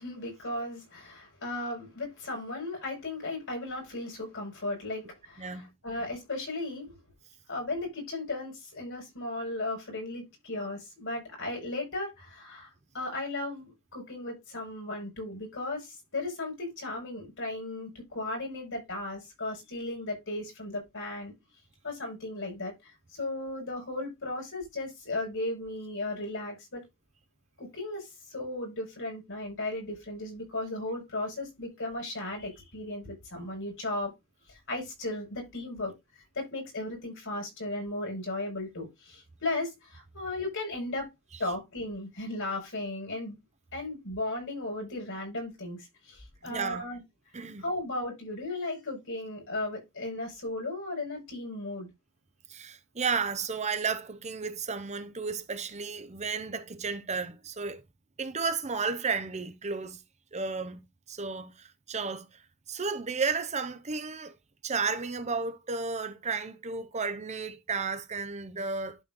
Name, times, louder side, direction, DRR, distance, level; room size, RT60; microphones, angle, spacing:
voice 1, 0.0-7.0 7.5-21.3 21.8-26.8 27.6-28.0 28.3-34.1 34.5-35.9 36.3-41.1 41.4-43.4 43.7-47.0 47.6-51.9, left 2 dB, 60° left, 5.4 m, -36 dB
voice 2, 5.4-5.7 46.4-46.8 47.3-47.6 52.5-57.8 58.2-60.0 60.3-60.8 61.1-62.3 62.7-64.3 64.6-69.0, right 5 dB, 30° right, 0.8 m, -33 dB
11.5 x 4.2 x 3.7 m
head